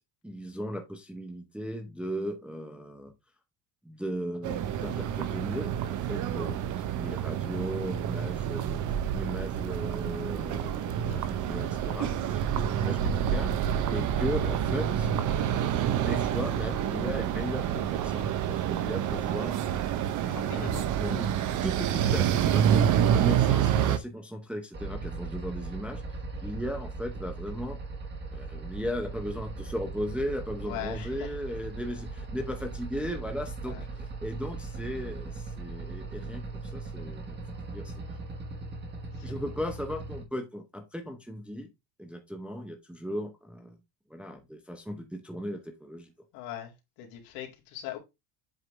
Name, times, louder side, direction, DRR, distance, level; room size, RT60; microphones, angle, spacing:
voice 1, 0.2-3.1 3.8-13.6 13.9-15.1 15.9-19.6 20.2-21.3 21.6-26.0 26.4-27.8 28.3-36.4 36.7-37.4 37.7-37.9 39.2-41.7 42.0-43.8 44.1-46.1, equal, ahead, 0.7 m, -37 dB
sound 1, 4.4-24.0, right 9 dB, 40° right, 0.7 m, -28 dB
voice 2, 20.3-20.8 26.3-26.4 30.6-31.3 33.6-33.8 39.2-39.3 46.3-46.7 47.0-48.0, left 12 dB, 75° left, 2.3 m, -40 dB
sound 2, 24.7-40.2, right 3 dB, 20° right, 1.2 m, -39 dB
7.9 x 3.7 x 3.2 m
cardioid pair, 145°, 50 cm